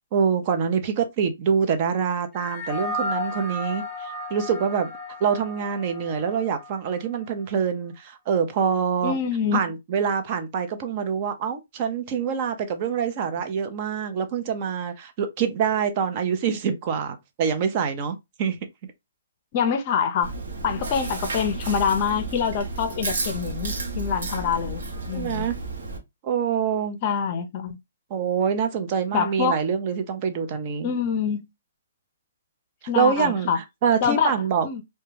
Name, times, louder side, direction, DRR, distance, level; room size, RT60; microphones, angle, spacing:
voice 1, 0.1-4.9 5.2-9.1 9.5-18.6 25.1-25.6 26.2-27.0 28.1-30.9 32.9-34.7, right 7 dB, 40° right, 0.5 m, -25 dB
sound 1, 2.3-7.0, left 2 dB, 10° right, 0.8 m, -33 dB
voice 2, 9.0-9.7 19.5-20.3 20.6-25.5 27.0-27.8 29.1-29.6 30.8-31.5 32.9-33.6 34.0-34.4 34.6-34.8, left 7 dB, 40° left, 0.5 m, -25 dB
Chewing mastication, 20.2-26.0, right 3 dB, 70° right, 0.8 m, -32 dB
2.2 x 2.1 x 3.1 m
hypercardioid pair, 135°, 0 cm